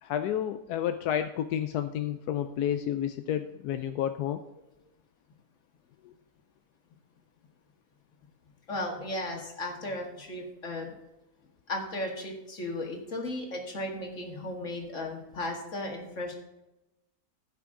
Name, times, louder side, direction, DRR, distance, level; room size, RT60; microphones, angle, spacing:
voice 1, 0.0-4.4 6.0-6.1, left 10 dB, 85° left, 8 dB, 1.1 m, -30 dB
voice 2, 8.7-10.9 11.7-16.4, left 1 dB, 55° left, 1 dB, 2.2 m, -35 dB
15.5 x 5.8 x 3.7 m, 0.95 s
omnidirectional pair, 1.6 m